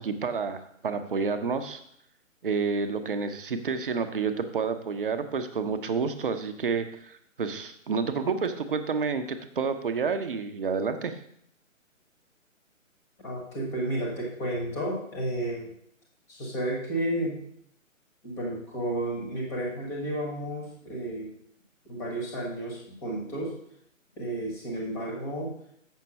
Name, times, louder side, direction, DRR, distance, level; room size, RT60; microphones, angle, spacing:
voice 1, 0.0-1.8 2.4-11.2, right 5 dB, 40° right, 9 dB, 0.9 m, -29 dB
voice 2, 13.2-15.7 16.3-17.4 18.2-21.3 21.8-23.5 24.2-25.5, right 1 dB, 5° left, -2 dB, 1.0 m, -32 dB
7.4 x 5.9 x 5.4 m, 0.71 s
figure-of-eight pair, 140°, 40 cm